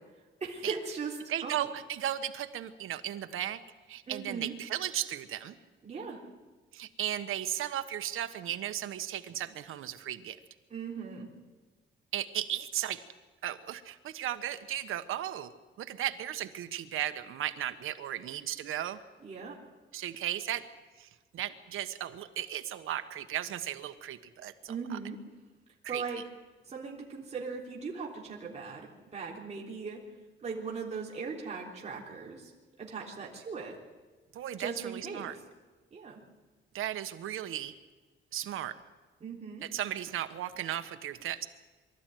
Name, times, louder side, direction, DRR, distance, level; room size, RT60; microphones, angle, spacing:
voice 1, 0.4-1.2 1.4-1.7 4.1-4.5 5.8-6.2 10.7-11.3 19.2-19.6 24.7-25.2 25.9-26.2 26.7-30.0 30.4-32.5 32.8-33.8 34.6-35.3 35.9-36.2 39.2-39.6, right 5 dB, 35° right, -3 dB, 3.6 m, -39 dB
voice 2, 1.3-3.6 3.9-5.6 6.7-10.4 12.1-13.0 13.4-15.5 15.8-19.0 19.9-20.7 21.0-21.1 21.3-25.0 25.8-26.0 34.3-35.4 36.7-37.7 38.3-38.8 39.6-41.5, right 11 dB, 85° right, 10 dB, 1.3 m, -35 dB
24.0 x 13.5 x 9.3 m, 1.3 s
cardioid pair, 150°, 20 cm